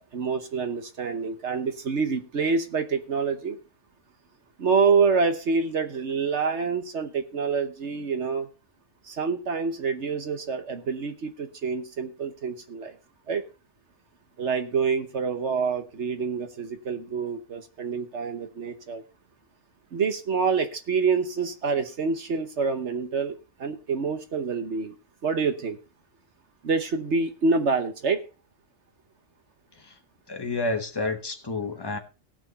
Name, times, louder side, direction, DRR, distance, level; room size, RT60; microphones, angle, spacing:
voice 1, 0.0-3.6 4.6-8.5 9.0-12.9 13.3-13.4 14.4-19.0 19.9-24.9 25.2-25.8 26.6-28.2, right 5 dB, 60° right, 8 dB, 1.3 m, -27 dB
voice 2, 30.3-32.0, left 3 dB, 20° left, 5 dB, 1.2 m, -29 dB
18.0 x 6.2 x 4.0 m, 0.32 s
omnidirectional pair, 1.4 m